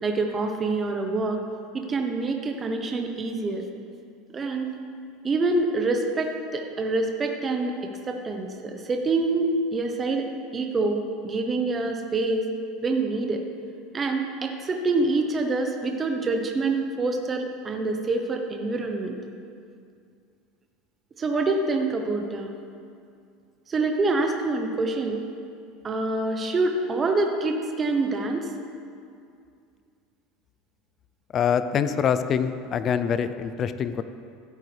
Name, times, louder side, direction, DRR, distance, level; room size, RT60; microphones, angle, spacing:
voice 1, 0.0-1.4 1.7-3.7 4.3-4.7 5.2-7.8 8.1-10.3 10.5-12.5 12.8-13.4 13.9-19.2 21.2-22.5 23.7-25.3 25.8-28.5, right 3 dB, 25° right, 3 dB, 0.9 m, -26 dB
voice 2, 31.3-34.0, left 7 dB, 40° left, 11 dB, 0.5 m, -25 dB
15.0 x 8.5 x 3.4 m, 2.4 s
supercardioid pair, 125°, 0 cm